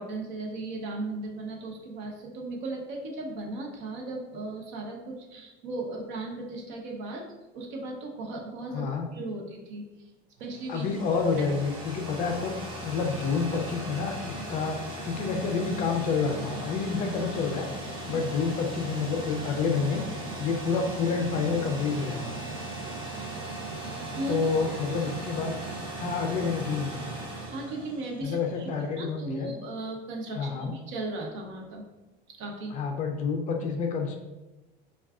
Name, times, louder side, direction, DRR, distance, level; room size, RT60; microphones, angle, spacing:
voice 1, 0.0-7.3 7.5-9.9 10.4-10.9 11.4-11.5 18.1-18.2 24.1-24.4 27.4-28.7 29.0-31.8 32.4-32.8, right 2 dB, 65° right, 1 dB, 0.8 m, -36 dB
voice 2, 8.7-9.1 10.7-12.5 12.8-17.7 18.0-20.0 20.4-22.4 24.3-25.5 26.0-27.0 28.2-29.5 30.3-30.7 32.7-34.2, left 5 dB, 35° left, 3 dB, 0.4 m, -29 dB
sound 1, 10.4-28.5, right 1 dB, 25° right, 0.8 m, -38 dB
5.6 x 2.3 x 2.4 m, 1.1 s
cardioid pair, 160°, 21 cm